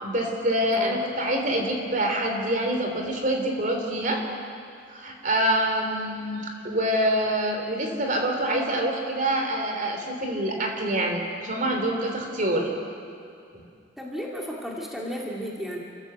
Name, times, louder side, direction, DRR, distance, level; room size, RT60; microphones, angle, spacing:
voice 1, 0.0-4.2 4.9-12.7 13.5-13.6, right 1 dB, 45° right, 2 dB, 3.5 m, -26 dB
voice 2, 14.0-15.8, equal, ahead, -3 dB, 2.3 m, -33 dB
29.5 x 15.0 x 8.2 m, 2.4 s
head